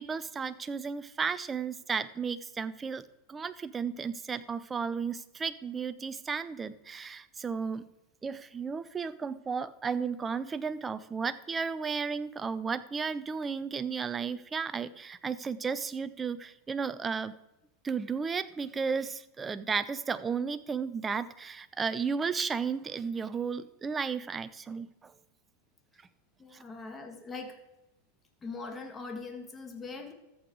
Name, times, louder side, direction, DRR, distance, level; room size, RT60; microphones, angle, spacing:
voice 1, 0.0-7.9 8.2-17.3 17.8-25.1, right 5 dB, 20° right, 14 dB, 0.7 m, -34 dB
voice 2, 26.4-27.6 28.4-30.1, left 4 dB, 20° left, 5 dB, 1.9 m, -41 dB
14.0 x 7.9 x 4.8 m, 0.92 s
hypercardioid pair, 110°, 0 cm